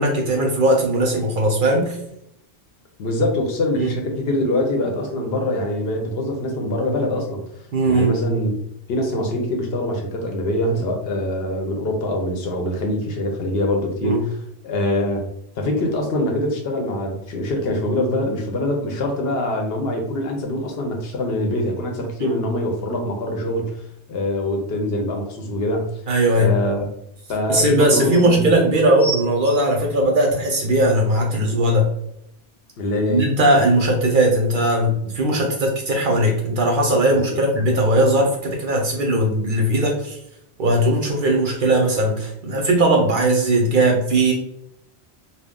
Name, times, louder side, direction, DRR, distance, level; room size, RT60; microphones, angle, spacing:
voice 1, 0.0-2.0 3.8-3.9 7.7-8.2 14.0-14.2 22.2-22.4 26.1-26.5 27.5-31.9 33.1-40.2 40.6-44.3, right 1 dB, 55° right, 1 dB, 0.7 m, -18 dB
voice 2, 3.0-8.5 8.9-14.2 14.6-15.2 15.6-26.0 26.3-26.9 27.3-28.5 32.8-33.2 37.1-37.7, left 1 dB, 65° left, 2 dB, 0.8 m, -24 dB
sound 1, 27.8-28.3 29.0-30.6 31.3-31.4, right 3 dB, 30° left, 0.7 m, -32 dB
2.3 x 2.1 x 3.5 m, 0.77 s
omnidirectional pair, 1.2 m